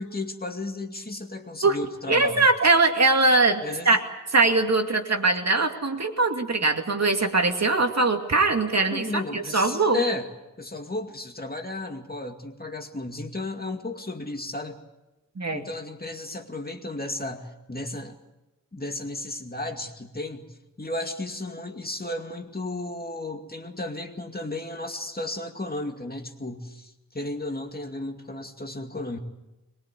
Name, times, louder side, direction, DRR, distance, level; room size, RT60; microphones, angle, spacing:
voice 1, 0.0-2.5 3.6-4.0 8.9-10.3 10.6-14.8 15.5-18.2 18.7-29.2, left 2 dB, 30° left, 4 dB, 2.3 m, -34 dB
voice 2, 2.1-4.0 4.3-10.0 15.4-15.6, right 3 dB, 50° right, 4 dB, 2.5 m, -21 dB
23.0 x 22.0 x 8.4 m, 1.0 s
wide cardioid pair, 105°, 33 cm